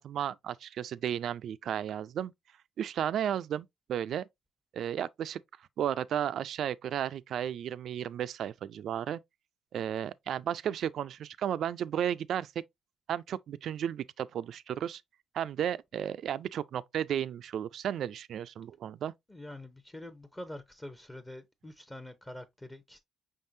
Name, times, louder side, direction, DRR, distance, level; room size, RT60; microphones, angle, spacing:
voice 1, 0.0-2.3 2.8-4.3 4.7-5.4 5.8-9.2 9.7-12.5 13.1-15.0 15.3-19.1, right 9 dB, 70° right, 0.3 m, -33 dB
voice 2, 19.3-23.0, left 1 dB, 15° left, 0.7 m, -45 dB
5.5 x 3.6 x 2.6 m
cardioid pair, 90°, 0 cm